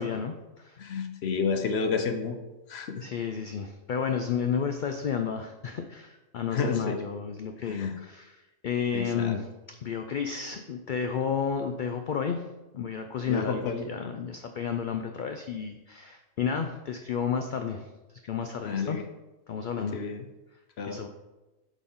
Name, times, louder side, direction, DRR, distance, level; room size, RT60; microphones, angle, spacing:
voice 1, 0.0-0.8 3.0-9.5 9.8-12.4 12.7-17.9 18.2-19.0 19.5-20.0 20.9-21.1, left 7 dB, 80° left, 6 dB, 0.4 m, -31 dB
voice 2, 0.8-2.4 2.7-3.0 6.5-7.0 7.7-7.9 8.9-9.4 13.3-13.9 18.6-19.0 19.9-20.2 20.8-21.1, left 5 dB, 60° left, 7 dB, 0.8 m, -30 dB
8.1 x 4.1 x 3.7 m, 1.1 s
omnidirectional pair, 1.4 m